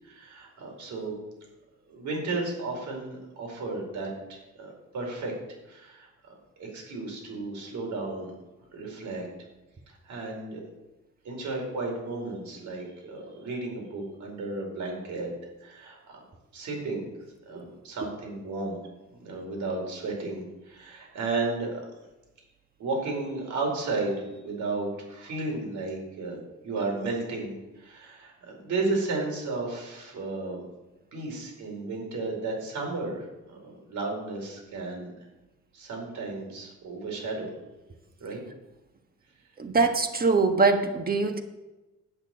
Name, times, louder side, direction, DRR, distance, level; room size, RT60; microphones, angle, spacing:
voice 1, 0.0-1.2 1.9-5.3 5.7-6.1 6.6-8.4 8.7-9.3 9.9-10.6 11.2-15.3 15.6-16.2 16.5-17.0 17.4-18.8 19.2-21.8 22.8-30.6 31.1-35.1 35.7-37.5 38.2-38.4, right 3 dB, 75° right, 0 dB, 4.8 m, -33 dB
voice 2, 39.6-41.4, right 4 dB, 30° right, 6 dB, 1.6 m, -23 dB
10.5 x 6.4 x 8.8 m, 1.0 s
cardioid pair, 90°, 30 cm